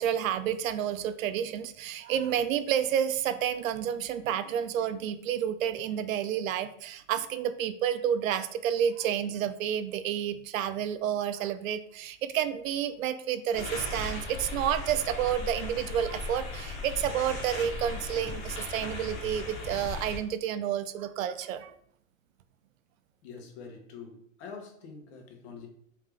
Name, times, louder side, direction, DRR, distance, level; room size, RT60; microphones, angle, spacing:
voice 1, 0.0-21.7, right 9 dB, 75° right, 11 dB, 0.5 m, -30 dB
sound 1, 13.5-20.2, left 3 dB, 30° left, 1.2 m, -37 dB
voice 2, 23.2-25.7, left 5 dB, 50° left, 3 dB, 1.0 m, -45 dB
3.4 x 2.8 x 3.4 m, 0.67 s
supercardioid pair, 150°, 41 cm